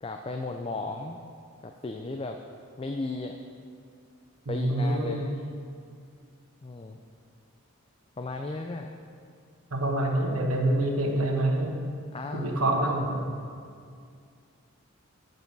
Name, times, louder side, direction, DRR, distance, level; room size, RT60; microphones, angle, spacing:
voice 1, 0.0-1.2 1.6-2.4 2.8-3.4 4.5-5.5 6.6-7.0 8.2-8.9 12.1-12.7, left 2 dB, 25° left, 4 dB, 0.3 m, -35 dB
voice 2, 4.5-5.2 9.7-11.8 12.3-13.3, right 1 dB, 90° right, 1 dB, 1.3 m, -26 dB
9.3 x 8.1 x 4.6 m, 2.3 s
head